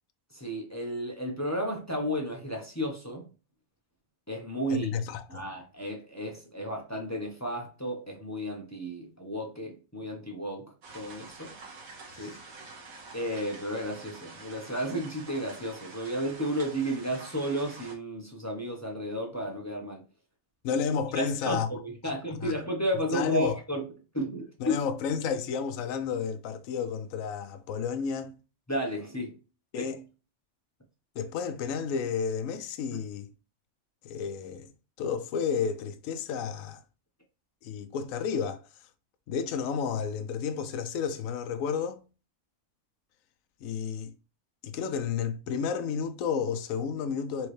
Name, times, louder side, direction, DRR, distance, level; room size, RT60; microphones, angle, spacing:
voice 1, 0.3-3.3 4.3-4.9 5.3-11.5 12.1-12.4 13.1-20.0 21.1-23.9 24.1-24.8 28.7-29.3 29.8-29.9, equal, 15° left, 0.6 m, -33 dB
voice 2, 4.7-5.4 12.1-12.4 20.6-21.7 22.0-22.1 22.4-22.5 23.1-23.6 24.6-28.4 29.7-30.0 31.2-33.3 34.0-34.7 35.0-36.8 37.6-38.6 39.3-42.0 43.6-44.1 44.6-47.5, left 6 dB, 70° left, 0.9 m, -31 dB
sound 1, 10.8-18.0, right 3 dB, 70° right, 1.5 m, -47 dB
4.6 x 3.1 x 3.1 m
omnidirectional pair, 1.5 m